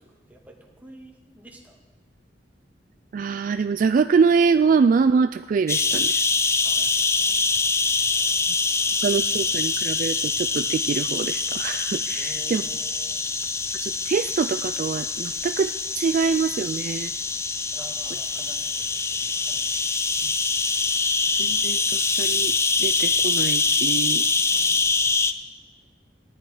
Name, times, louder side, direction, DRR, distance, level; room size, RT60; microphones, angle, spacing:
voice 1, 0.0-1.8 6.6-8.4 8.8-9.2 12.2-13.3 17.7-19.8 24.5-25.2, right 1 dB, 10° right, 0 dB, 1.8 m, -49 dB
voice 2, 3.1-6.2 9.0-12.6 13.8-17.1 20.2-20.3 21.4-22.5 22.8-24.2, right 5 dB, 50° right, 11 dB, 0.3 m, -24 dB
sound 1, 5.7-25.3, left 4 dB, 15° left, 0.4 m, -24 dB
16.0 x 10.5 x 4.9 m, 1.2 s
head